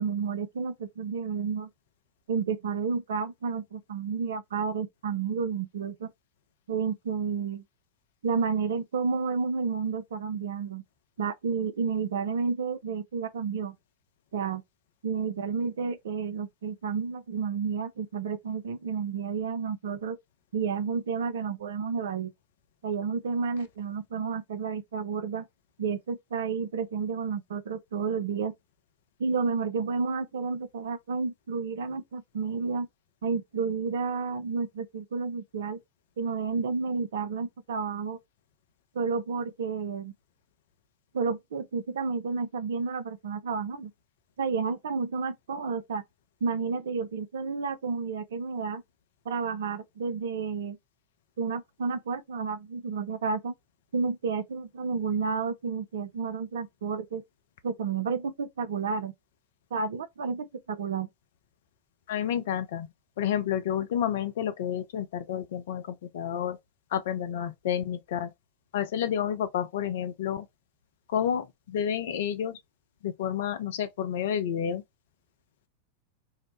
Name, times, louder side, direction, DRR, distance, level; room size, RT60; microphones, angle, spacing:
voice 1, 0.0-1.7 2.3-6.1 6.7-7.6 8.2-10.8 11.2-13.8 14.3-14.6 15.0-20.2 20.5-22.3 22.8-25.5 25.8-28.5 29.2-32.9 33.2-35.8 36.2-38.2 38.9-40.1 41.1-43.9 44.4-46.0 46.4-48.8 49.3-50.8 51.4-53.5 53.9-57.2 57.6-59.1 59.7-61.1, right 5 dB, 60° right, 0.4 m, -31 dB
voice 2, 62.1-62.9 63.2-66.6 66.9-68.3 68.7-70.5 71.1-72.6 73.0-74.8, left 9 dB, 55° left, 0.4 m, -30 dB
2.7 x 2.0 x 3.0 m
figure-of-eight pair, 90°, 0 cm